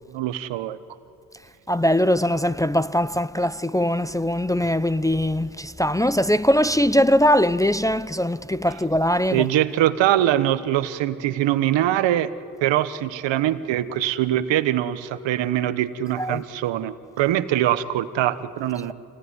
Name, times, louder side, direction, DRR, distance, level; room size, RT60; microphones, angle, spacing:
voice 1, 0.1-0.8 9.3-12.3 12.6-18.9, right 12 dB, 75° right, 1.2 m, -23 dB
voice 2, 1.7-9.5 16.2-16.4, equal, 10° left, 0.6 m, -21 dB
27.0 x 18.5 x 9.7 m
supercardioid pair, 65°, 44 cm